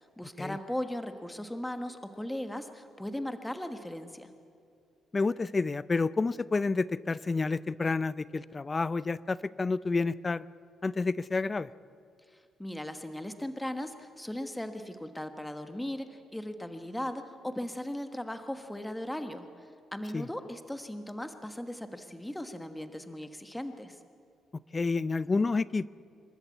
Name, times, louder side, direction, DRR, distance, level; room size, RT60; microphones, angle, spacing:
voice 1, 0.0-4.3 12.6-24.0, left 1 dB, 5° left, 8 dB, 1.3 m, -38 dB
voice 2, 5.1-10.4 10.8-11.7 20.1-20.3 24.7-25.9, left 3 dB, 30° left, 18 dB, 0.5 m, -29 dB
27.5 x 13.0 x 8.4 m, 2.5 s
cardioid pair, 90°, 0 cm